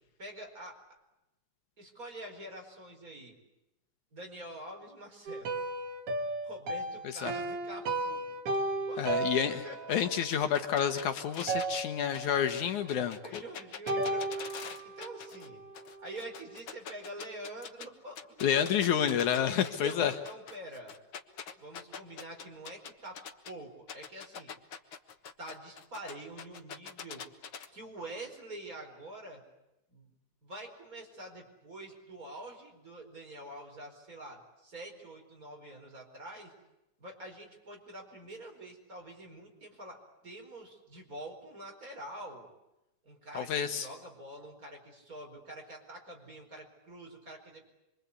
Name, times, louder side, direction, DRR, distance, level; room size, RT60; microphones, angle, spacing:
voice 1, 0.2-0.8 1.8-3.4 4.1-5.5 6.4-8.3 8.9-9.8 12.9-14.5 14.8-15.6 16.0-18.4 19.5-21.0 21.6-24.5 25.4-27.3 27.7-29.4 29.9-30.1 30.4-36.5 37.0-42.5 43.0-47.7, right 1 dB, 25° right, 2 dB, 4.9 m, -46 dB
sound 1, 5.3-11.1 11.5-12.6 13.9-16.1, right 2 dB, 50° right, 2.6 m, -35 dB
voice 2, 9.0-9.6 9.9-13.4 18.4-20.1 43.3-43.9, left 9 dB, 75° left, 7 dB, 2.5 m, -29 dB
sound 2, 10.3-15.5 15.7-17.9 18.2-23.5 23.9-27.7, left 7 dB, 50° left, 1.7 m, -44 dB
26.0 x 24.5 x 8.3 m, 0.94 s
omnidirectional pair, 3.6 m